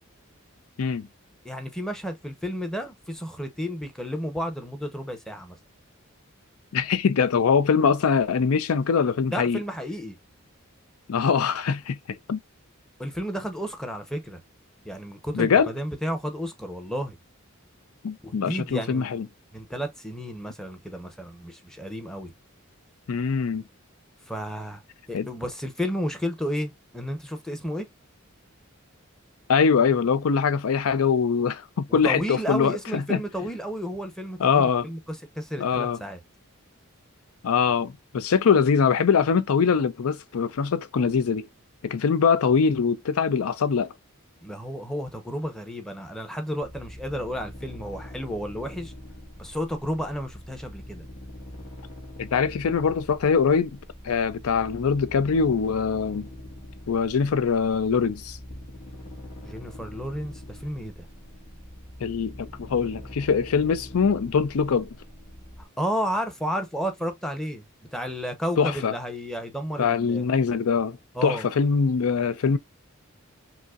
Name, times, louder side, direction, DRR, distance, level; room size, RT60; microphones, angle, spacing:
voice 1, 1.4-5.6 9.3-10.2 13.0-14.4 14.8-17.2 18.2-19.1 19.5-22.3 24.3-24.8 25.1-27.9 31.9-36.2 44.4-48.9 49.4-51.0 59.4-61.1 65.6-67.6 67.9-70.3 71.1-71.4, equal, 5° left, 0.7 m, -32 dB
voice 2, 6.7-9.6 11.1-12.0 12.3-12.4 15.3-15.7 18.0-19.3 23.1-23.6 25.1-25.3 29.5-33.2 34.4-34.9 35.6-36.0 37.4-41.5 41.8-43.9 52.2-53.8 54.0-56.3 56.9-58.4 62.0-64.9 68.6-68.9 69.8-72.6, left 6 dB, 85° left, 0.5 m, -23 dB
sound 1, 46.6-65.7, left 1 dB, 35° left, 1.6 m, -43 dB
5.2 x 2.0 x 2.3 m
head